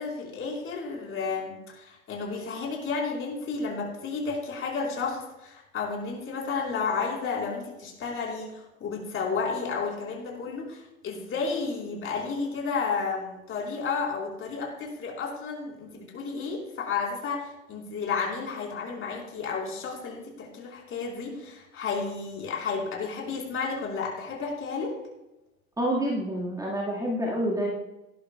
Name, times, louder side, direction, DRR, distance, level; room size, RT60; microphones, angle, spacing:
voice 1, 0.0-25.0, left 4 dB, 30° left, 0 dB, 3.9 m, -32 dB
voice 2, 25.8-27.7, equal, 10° right, -3 dB, 1.7 m, -28 dB
18.0 x 11.5 x 2.3 m, 0.95 s
figure-of-eight pair, 90°, 44 cm